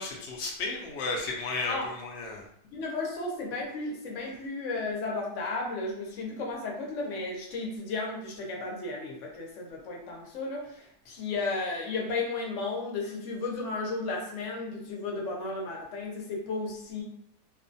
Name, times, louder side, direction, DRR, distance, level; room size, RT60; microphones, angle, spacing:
voice 1, 0.0-2.4, left 3 dB, 85° left, -1 dB, 0.6 m, -33 dB
voice 2, 2.7-17.0, left 3 dB, 60° left, -1 dB, 0.8 m, -34 dB
2.5 x 2.2 x 2.5 m, 0.70 s
omnidirectional pair, 1.7 m